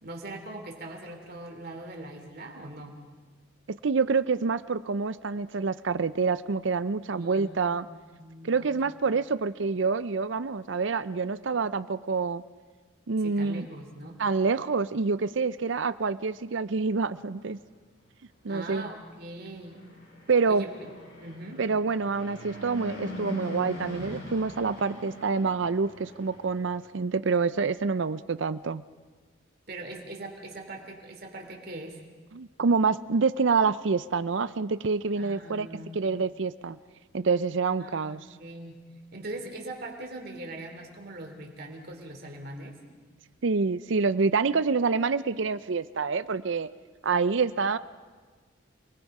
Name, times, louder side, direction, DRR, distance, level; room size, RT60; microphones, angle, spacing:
voice 1, 0.0-3.0 7.1-8.9 13.2-14.2 18.5-19.8 20.4-20.9 21.2-21.6 29.7-32.0 35.1-36.0 37.8-38.8 39.1-42.8, right 2 dB, 50° right, 2 dB, 3.0 m, -41 dB
voice 2, 3.8-7.9 8.4-12.4 13.1-13.7 14.2-17.6 18.4-18.8 20.3-20.6 21.6-28.8 32.3-35.7 35.9-36.8 37.1-38.2 43.4-46.7 47.0-47.8, right 4 dB, 65° right, 15 dB, 0.6 m, -27 dB
Fixed-wing aircraft airplane, 19.5-26.9, left 1 dB, 55° left, 7.4 m, -42 dB
28.5 x 20.0 x 5.4 m, 1.4 s
head